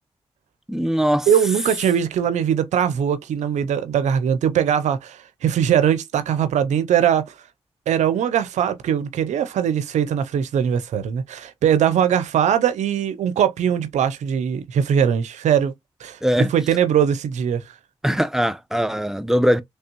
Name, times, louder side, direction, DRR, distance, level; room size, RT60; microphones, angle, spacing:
voice 1, 0.7-1.3 16.2-16.5 18.0-19.6, equal, 5° right, 0.7 m, -20 dB
voice 2, 1.3-7.2 7.9-15.7 16.0-16.2 16.5-17.6, right 9 dB, 90° right, 0.5 m, -21 dB
3.3 x 3.3 x 2.9 m
supercardioid pair, 40°, 12 cm